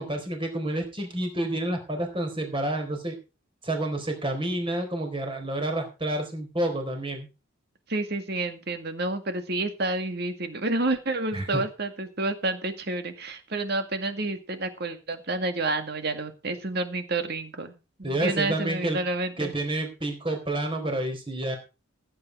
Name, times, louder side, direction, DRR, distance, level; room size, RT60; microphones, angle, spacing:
voice 1, 0.0-3.2 3.6-7.3 11.3-11.6 18.0-19.0 19.4-21.6, right 1 dB, 25° right, 3 dB, 4.1 m, -29 dB
voice 2, 7.9-19.5, right 2 dB, 50° right, 8 dB, 2.0 m, -29 dB
15.5 x 8.9 x 4.7 m, 0.30 s
head